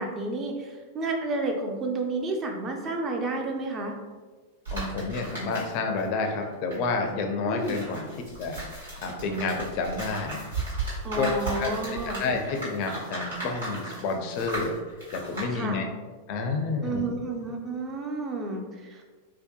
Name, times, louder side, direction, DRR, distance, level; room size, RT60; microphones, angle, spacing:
voice 1, 0.0-4.0 7.5-7.8 11.0-12.2 15.5-15.8 16.8-19.0, right 2 dB, 30° right, 2 dB, 0.4 m, -31 dB
sound 1, 4.6-6.0 6.3-15.5, right 2 dB, 80° right, 1.3 m, -36 dB
voice 2, 4.7-8.1 8.4-8.6 9.0-10.4 11.2-11.3 11.6-15.8 16.3-17.1, left 4 dB, 45° left, 3 dB, 0.4 m, -30 dB
2.7 x 2.1 x 2.3 m, 1.4 s
figure-of-eight pair, 95°, 0 cm